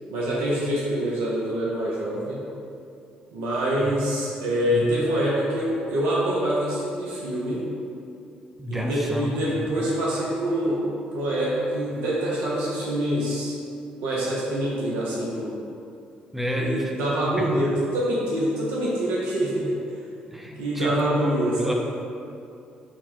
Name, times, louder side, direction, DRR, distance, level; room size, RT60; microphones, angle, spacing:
voice 1, 0.1-2.4 3.3-7.6 8.7-10.8 11.1-13.6 14.0-15.6 16.5-19.8 20.5-21.7, right 1 dB, 80° right, -6 dB, 0.6 m, -25 dB
voice 2, 8.6-9.3 9.5-9.7 16.3-16.9 17.4-17.5 20.3-21.7, equal, 5° right, 0 dB, 0.6 m, -30 dB
3.8 x 2.1 x 4.4 m, 2.5 s
hypercardioid pair, 50°, 4 cm